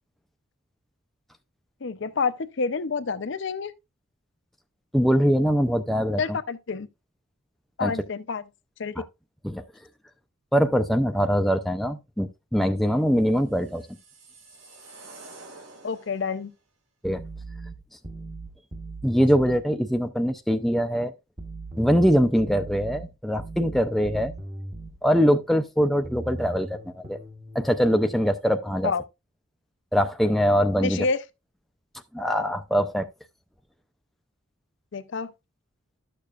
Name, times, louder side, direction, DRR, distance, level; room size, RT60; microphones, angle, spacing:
voice 1, 1.8-3.7 6.2-6.9 7.8-8.4 8.8-9.0 15.8-16.5 28.8-29.0 30.8-31.2 34.9-35.3, left 5 dB, 55° left, 0.5 m, -28 dB
voice 2, 4.9-6.2 7.8-7.9 9.4-9.6 10.5-13.9 17.0-17.2 19.0-21.1 21.8-24.3 25.0-27.2 27.5-28.9 29.9-31.0 32.1-33.1, equal, ahead, 0.4 m, -22 dB
sound 1, 13.3-16.5, right 3 dB, 75° right, 2.1 m, -48 dB
sound 2, 17.0-19.6 21.4-25.0 26.0-27.7, right 2 dB, 25° right, 1.0 m, -38 dB
12.0 x 6.7 x 2.4 m
head